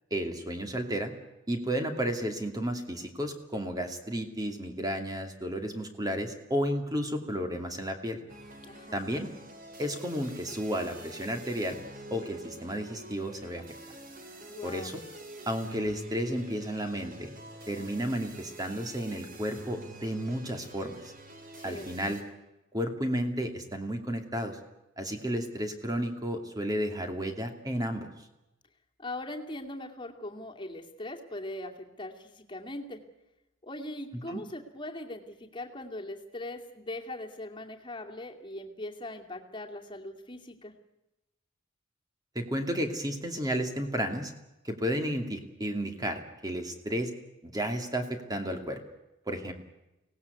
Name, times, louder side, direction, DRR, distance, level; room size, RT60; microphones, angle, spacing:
voice 1, 0.1-1.1 1.5-8.2 8.9-9.3 9.8-11.8 12.1-13.6 14.6-15.0 15.5-17.3 17.7-21.0 21.6-22.2 22.7-24.6 25.0-28.1 34.3-34.4 42.3-44.3 44.6-47.1 47.4-48.8 49.3-49.5, equal, 20° right, 5 dB, 2.6 m, -32 dB
sound 1, 8.3-22.2, right 1 dB, 40° right, 3.2 m, -46 dB
voice 2, 8.6-9.0 14.5-15.0 21.6-21.9 29.0-33.0 33.6-40.7, left 1 dB, 25° left, 2 dB, 2.5 m, -40 dB
24.5 x 18.5 x 8.2 m, 0.95 s
head